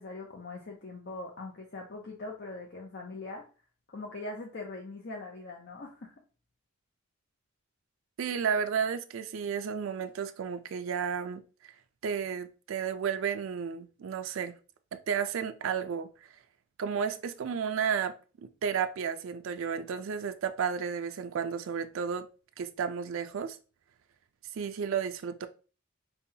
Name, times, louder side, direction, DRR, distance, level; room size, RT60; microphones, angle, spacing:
voice 1, 0.0-3.4 3.9-6.1, left 2 dB, 50° left, 0.5 m, -41 dB
voice 2, 8.2-11.7 12.0-14.5 14.9-16.3 16.8-22.3 22.6-23.6 24.5-25.5, right 7 dB, 70° right, 0.4 m, -32 dB
5.5 x 2.2 x 2.7 m
head